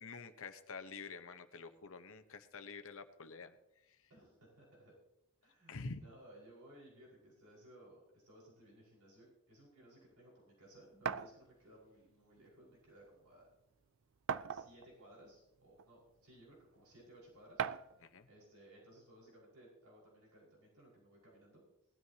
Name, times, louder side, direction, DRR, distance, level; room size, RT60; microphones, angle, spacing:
voice 1, 0.0-3.6 3.9-4.0 5.7-6.0 18.0-18.3, left 4 dB, 65° left, 9 dB, 1.0 m, -48 dB
voice 2, 4.1-4.9 5.4-13.5 14.5-18.0 18.3-21.6, right 1 dB, 85° right, -4 dB, 5.3 m, -60 dB
sound 1, 11.1-11.3 12.5-12.6 13.0-13.1 14.3-14.9 15.8-15.9 17.6-18.0, right 7 dB, 60° right, 0.5 m, -38 dB
19.5 x 12.5 x 2.9 m, 0.85 s
head